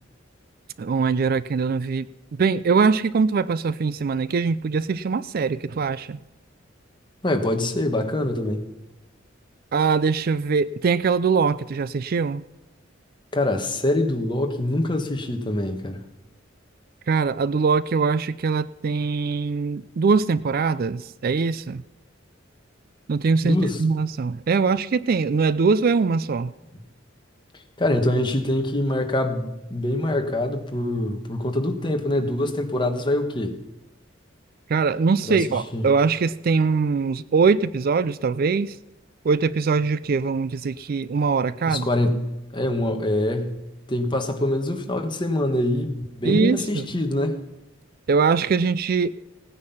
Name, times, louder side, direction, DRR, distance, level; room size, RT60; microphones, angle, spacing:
voice 1, 0.8-2.1 2.4-6.2 9.7-12.4 17.1-21.8 23.1-26.5 34.7-38.8 39.2-41.9 46.2-46.9 48.1-49.1, right 5 dB, 50° right, 17 dB, 0.4 m, -22 dB
voice 2, 7.2-8.6 13.3-16.0 23.4-23.8 27.8-33.5 35.3-35.8 41.7-43.6 43.9-47.4, left 1 dB, 25° left, 5 dB, 1.3 m, -24 dB
17.0 x 9.6 x 5.7 m, 1.0 s
head